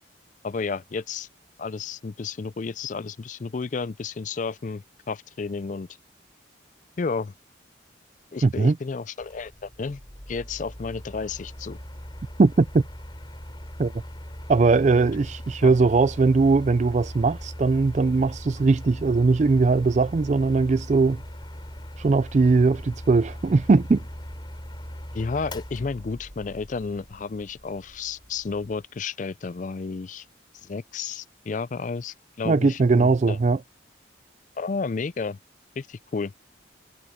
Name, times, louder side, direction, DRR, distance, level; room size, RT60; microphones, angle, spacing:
voice 1, 0.4-1.3 1.6-5.9 7.0-7.3 8.3-10.0 10.3-11.8 15.6-15.9 25.1-30.3 30.6-33.4 34.6-35.4 35.8-36.3, left 4 dB, 40° left, 0.4 m, -32 dB
voice 2, 8.4-8.8 12.4-12.8 13.8-13.9 14.5-21.2 22.0-24.0 32.4-33.6, right 4 dB, 35° right, 0.3 m, -20 dB
Mechanical fan, 9.2-28.9, equal, 25° left, 3.6 m, -40 dB
head